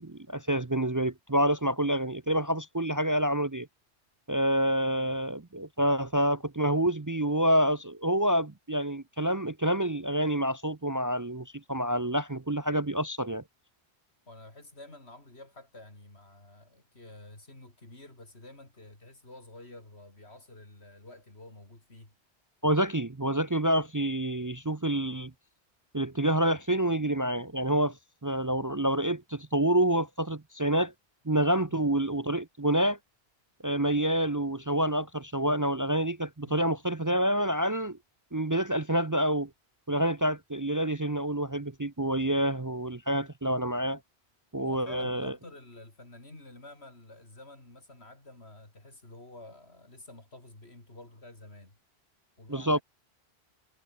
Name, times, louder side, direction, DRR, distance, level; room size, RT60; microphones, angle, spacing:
voice 1, 0.0-3.7 4.3-13.4 22.6-25.3 25.9-27.9 28.2-30.9 31.3-33.0 33.6-38.0 38.3-39.5 39.9-44.0 44.5-45.3 52.5-52.8, right 1 dB, 20° right, 0.7 m, -27 dB
voice 2, 14.3-22.2 31.7-31.8 36.5-36.7 44.6-51.8 52.4-52.8, left 2 dB, 85° left, 5.4 m, -50 dB
omnidirectional pair, 1.1 m